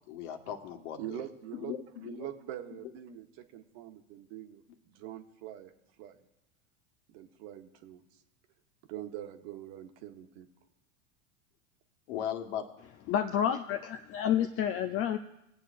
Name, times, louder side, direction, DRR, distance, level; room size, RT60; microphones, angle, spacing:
voice 1, 0.1-1.2 1.5-2.3 12.1-12.7, left 9 dB, 65° left, 5 dB, 1.5 m, -38 dB
voice 2, 1.0-1.7 2.0-5.7 6.0-6.3 7.1-8.0 8.9-10.5, right 12 dB, 55° right, 6 dB, 1.2 m, -44 dB
voice 3, 13.1-15.2, left 9 dB, 35° left, 7 dB, 0.5 m, -29 dB
20.5 x 8.2 x 2.5 m, 0.86 s
hypercardioid pair, 110°, 39 cm